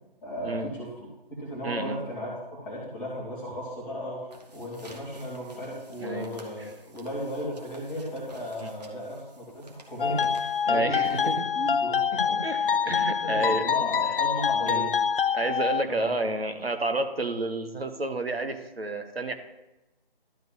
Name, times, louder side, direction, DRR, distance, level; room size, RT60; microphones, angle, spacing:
voice 1, 0.2-1.1 1.4-14.9 15.9-16.2, equal, 5° left, -7 dB, 1.4 m, -36 dB
voice 2, 1.6-2.0 6.0-6.3 8.6-8.7 10.7-11.5 12.4-12.6 12.8-13.7 14.7-14.9 15.3-19.3, right 2 dB, 80° right, 8 dB, 1.2 m, -30 dB
sound 1, 4.1-11.7, right 2 dB, 45° right, 1.5 m, -53 dB
sound 2, 10.0-15.8, left 7 dB, 65° left, 0.4 m, -26 dB
12.0 x 3.9 x 7.1 m, 0.98 s
figure-of-eight pair, 155°, 30 cm